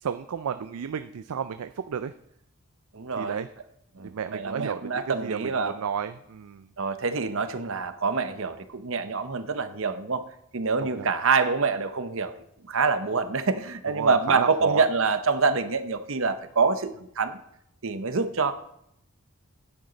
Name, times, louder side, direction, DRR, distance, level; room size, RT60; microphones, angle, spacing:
voice 1, 0.0-2.1 3.2-3.5 4.0-6.7 10.8-11.1 13.9-14.9, right 7 dB, 85° right, 10 dB, 0.4 m, -32 dB
voice 2, 2.9-3.5 4.0-5.7 6.8-10.2 10.5-12.3 12.7-17.4 17.8-18.5, right 4 dB, 65° right, 10 dB, 0.8 m, -26 dB
12.0 x 9.7 x 4.0 m, 0.76 s
head